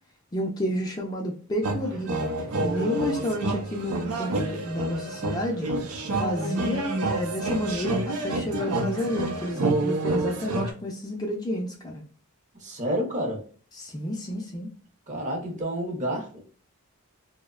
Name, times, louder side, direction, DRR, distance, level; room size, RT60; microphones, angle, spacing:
voice 1, 0.3-2.2 2.6-5.7 6.1-12.0 13.7-14.7, left 1 dB, 20° left, 1 dB, 0.3 m, -30 dB
sound 1, 1.6-10.7, right 2 dB, 85° right, 0.5 m, -28 dB
voice 2, 12.6-13.4 15.1-16.4, right 1 dB, 35° right, 1 dB, 0.7 m, -29 dB
2.7 x 2.0 x 2.3 m, 0.41 s
head